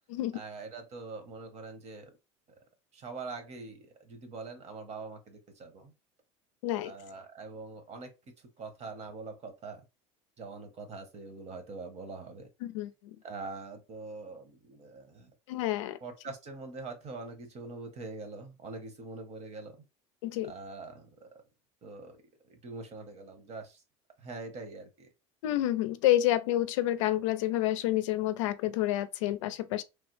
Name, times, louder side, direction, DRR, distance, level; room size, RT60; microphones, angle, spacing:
voice 1, 0.3-2.1 2.9-5.9 6.8-8.1 8.4-9.8 10.4-12.5 13.2-15.3 16.0-19.7 20.4-21.3 21.8-22.2 22.4-23.8 24.2-25.1, right 3 dB, 45° right, 1.1 m, -43 dB
voice 2, 15.5-16.0 20.2-20.5 25.4-29.8, left 14 dB, 90° left, 0.4 m, -29 dB
3.2 x 2.0 x 3.2 m
supercardioid pair, 95°, 16 cm